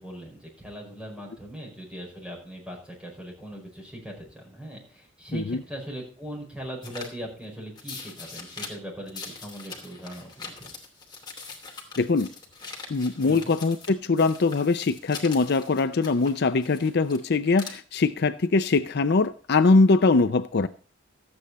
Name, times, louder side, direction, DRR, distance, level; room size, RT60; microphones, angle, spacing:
voice 1, 0.0-10.7 13.2-13.5, right 1 dB, 5° right, 5.2 m, -40 dB
sound 1, 6.8-7.1 7.8-8.7 9.1-13.9 14.2-17.2 17.5-17.7, left 4 dB, 20° left, 2.8 m, -42 dB
voice 2, 12.0-12.3 12.9-20.7, left 3 dB, 55° left, 0.5 m, -22 dB
14.0 x 8.6 x 4.1 m
head